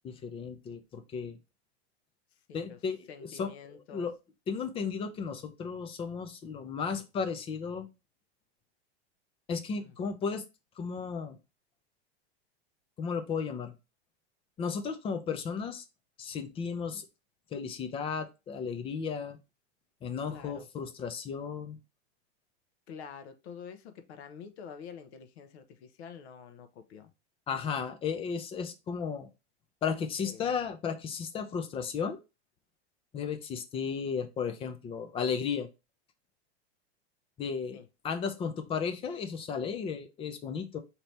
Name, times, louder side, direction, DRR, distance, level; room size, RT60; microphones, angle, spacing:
voice 1, 0.0-1.4 2.5-4.1 4.5-7.9 9.5-10.4 10.8-11.4 13.0-13.7 14.6-15.8 16.2-17.1 17.5-19.4 20.0-21.8 27.5-29.3 29.8-32.2 33.1-35.7 37.4-37.8 38.0-40.8, left 6 dB, 15° left, 9 dB, 0.4 m, -34 dB
voice 2, 3.1-4.1 9.8-9.9 20.3-20.7 22.9-27.1 30.2-30.5 37.7-37.8, left 6 dB, 70° left, 9 dB, 0.9 m, -47 dB
4.2 x 2.9 x 3.2 m, 0.26 s
supercardioid pair, 130°, 34 cm